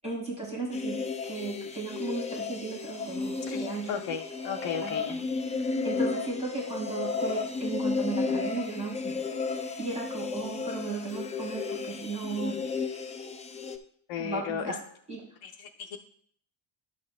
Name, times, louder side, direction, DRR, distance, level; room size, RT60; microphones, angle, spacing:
voice 1, 0.0-0.9 1.2-4.0 4.8-5.2 5.8-9.1 9.5-12.6 14.2-14.8 15.1-15.2, right 3 dB, 15° right, -6 dB, 3.4 m, -35 dB
sound 1, 0.7-13.8, left 4 dB, 15° left, 0.3 m, -33 dB
voice 2, 3.5-5.2 14.1-14.7 15.4-16.0, left 7 dB, 80° left, 2 dB, 0.7 m, -35 dB
11.0 x 8.6 x 2.2 m, 0.62 s
cardioid pair, 170°, 45 cm